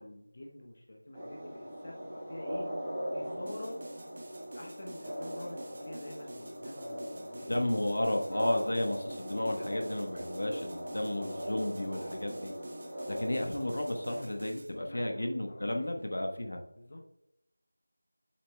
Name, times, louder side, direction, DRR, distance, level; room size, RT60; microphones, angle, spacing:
voice 1, 0.0-2.7 3.1-3.8 4.5-7.8 14.8-16.1 16.7-17.0, left 1 dB, 40° left, 0 dB, 0.9 m, -47 dB
sound 1, 1.1-14.2, equal, 10° right, 1.2 m, -40 dB
sound 2, 3.5-14.7, right 2 dB, 35° right, 1.0 m, -50 dB
voice 2, 7.5-12.5 13.1-16.6, left 1 dB, 70° left, 3 dB, 1.2 m, -33 dB
7.4 x 7.2 x 2.3 m, 0.84 s
figure-of-eight pair, 175°, 0 cm